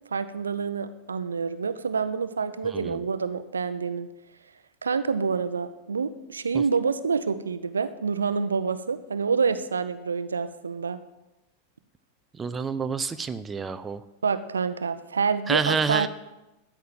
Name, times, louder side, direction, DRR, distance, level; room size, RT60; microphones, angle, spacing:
voice 1, 0.1-4.1 4.8-11.0 14.2-16.1, right 5 dB, 75° right, 12 dB, 0.7 m, -27 dB
voice 2, 12.4-14.0 15.5-16.1, right 5 dB, 15° right, 11 dB, 0.5 m, -28 dB
13.5 x 5.9 x 7.6 m, 0.99 s
figure-of-eight pair, 90°, 0 cm